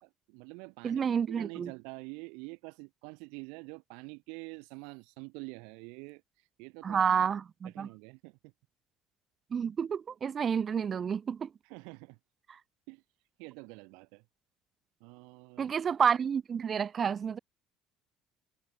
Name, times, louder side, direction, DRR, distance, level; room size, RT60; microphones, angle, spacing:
voice 1, 0.0-7.3 7.6-8.5 11.6-12.2 12.9-13.0 13.4-14.2 15.0-15.7, right 34 dB, 85° right, 1.2 m, -47 dB
voice 2, 0.8-1.7 6.8-7.9 9.5-11.5 15.6-17.4, right 7 dB, 35° right, 0.6 m, -29 dB
cardioid pair, 130°, 0 cm